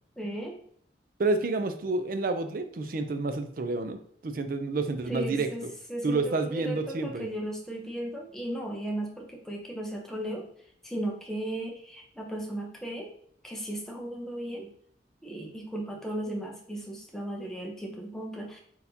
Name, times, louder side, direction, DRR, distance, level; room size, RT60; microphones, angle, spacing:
voice 1, 0.2-0.5 5.1-5.6 5.9-10.5 10.8-13.1 13.4-14.7 15.2-18.6, right 1 dB, ahead, -1 dB, 0.7 m, -36 dB
voice 2, 1.2-5.7 6.0-7.3, right 3 dB, 50° right, 8 dB, 0.4 m, -29 dB
4.1 x 4.0 x 2.7 m, 0.63 s
head